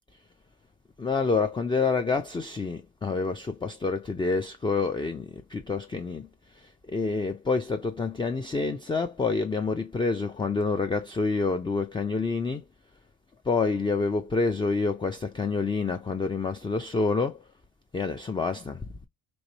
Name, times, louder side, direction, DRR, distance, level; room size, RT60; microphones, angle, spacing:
voice 1, 1.0-12.6 13.4-17.5 17.9-18.9, left 4 dB, 15° left, 0.3 m, -28 dB
3.1 x 2.6 x 3.9 m
supercardioid pair, 75°, 41 cm